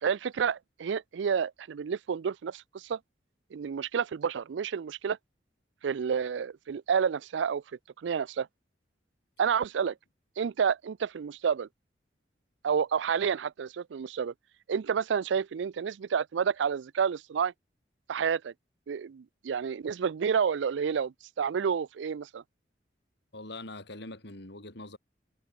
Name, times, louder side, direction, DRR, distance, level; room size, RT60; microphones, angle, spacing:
voice 1, 0.0-3.0 3.5-5.2 5.8-7.6 8.0-8.5 9.4-9.9 10.4-11.7 12.6-14.3 14.7-17.5 18.1-18.5 18.9-22.4, right 7 dB, 75° right, 0.4 m, -29 dB
voice 2, 23.3-25.0, left 2 dB, 65° left, 4.5 m, -43 dB
head